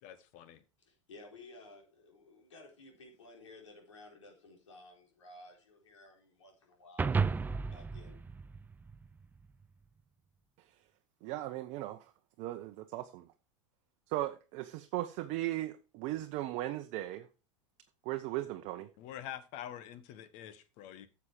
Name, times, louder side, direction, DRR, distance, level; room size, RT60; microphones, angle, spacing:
voice 1, 0.0-0.6 19.0-21.1, left 11 dB, 50° left, 1.4 m, -46 dB
voice 2, 0.8-8.2, left 2 dB, 75° left, 4.0 m, -55 dB
sound 1, 7.0-9.5, right 5 dB, 10° right, 0.4 m, -33 dB
voice 3, 11.2-12.1 12.4-13.3 14.1-17.3 18.0-18.9, right 15 dB, 50° right, 0.8 m, -37 dB
9.7 x 7.2 x 4.9 m
hypercardioid pair, 90°, 16 cm